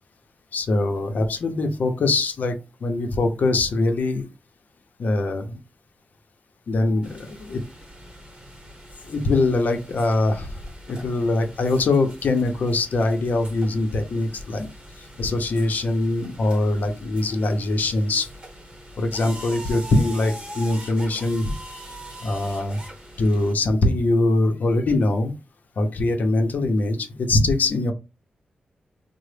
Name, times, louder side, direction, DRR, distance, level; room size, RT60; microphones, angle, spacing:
voice 1, 0.5-2.5 2.8-4.3 5.0-5.6 6.7-7.6 9.0-10.6 10.9-14.7 15.0-18.3 19.0-21.5 22.2-22.8 23.2-25.3 25.8-27.9, left 2 dB, 65° left, 6 dB, 0.6 m, -22 dB
sound 1, 7.0-23.5, right 1 dB, 30° right, 0.9 m, -42 dB
3.7 x 2.0 x 3.3 m, 0.29 s
wide cardioid pair, 155°, 3 cm